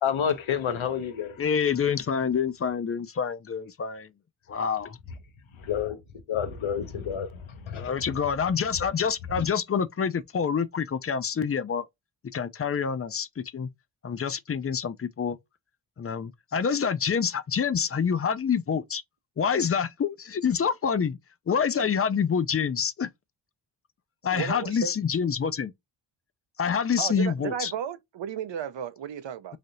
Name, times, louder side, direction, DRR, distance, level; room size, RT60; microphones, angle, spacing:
voice 1, 0.0-1.4 5.6-6.0 6.3-7.9 9.3-9.5, left 8 dB, 80° left, 0.8 m, -29 dB
voice 2, 1.4-4.1 4.5-5.0 7.8-11.9 12.3-13.7 14.0-15.4 16.0-19.0 19.4-21.2 21.5-23.1 24.2-25.7 26.6-27.7, left 6 dB, 35° left, 0.4 m, -27 dB
voice 3, 24.2-24.9 27.0-29.6, right 8 dB, 65° right, 0.6 m, -33 dB
3.3 x 2.7 x 2.5 m
wide cardioid pair, 85°, 47 cm